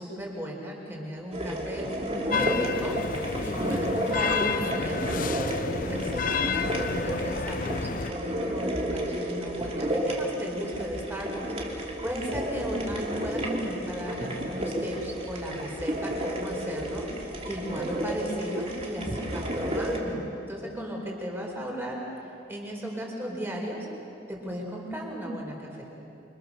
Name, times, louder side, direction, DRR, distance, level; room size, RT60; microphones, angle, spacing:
voice 1, 0.0-5.0 5.8-17.1 17.4-22.0 22.5-23.9 24.3-25.8, equal, 10° right, -1 dB, 5.1 m, -35 dB
sound 1, 1.3-20.0, equal, 30° right, 3.0 m, -32 dB
sound 2, 2.3-8.1, left 5 dB, 45° left, 0.6 m, -30 dB
28.5 x 26.0 x 6.9 m, 2.8 s
head